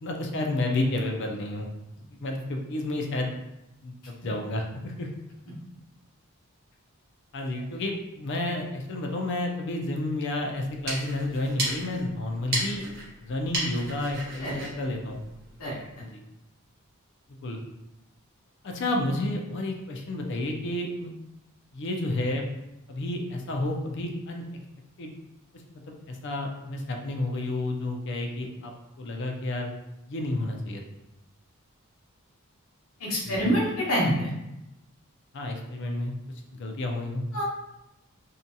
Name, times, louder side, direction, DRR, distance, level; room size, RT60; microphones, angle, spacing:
voice 1, 0.0-1.7 2.2-3.4 3.8-5.1 7.3-12.8 13.2-15.2 16.0-16.2 17.3-17.6 18.6-21.1 21.7-22.4 22.9-24.4 25.0-25.1 25.7-28.7 29.0-29.7 30.1-30.8 33.2-33.6 35.3-36.1 36.5-37.2, left 2 dB, 55° left, 2 dB, 0.4 m, -31 dB
sound 1, 10.6-15.9, right 1 dB, 50° right, 0.9 m, -35 dB
voice 2, 33.0-34.1 37.3-37.4, equal, 70° left, -4 dB, 0.8 m, -25 dB
2.6 x 2.2 x 2.7 m, 0.90 s
head